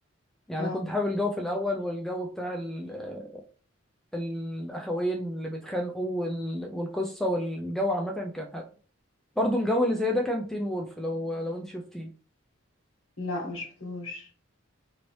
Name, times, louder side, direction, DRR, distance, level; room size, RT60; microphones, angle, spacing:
voice 1, 0.5-3.3 4.1-8.6 9.4-12.1, left 1 dB, ahead, 0.3 m, -30 dB
voice 2, 13.2-14.3, left 2 dB, 75° left, 1.3 m, -34 dB
2.9 x 2.7 x 3.0 m
head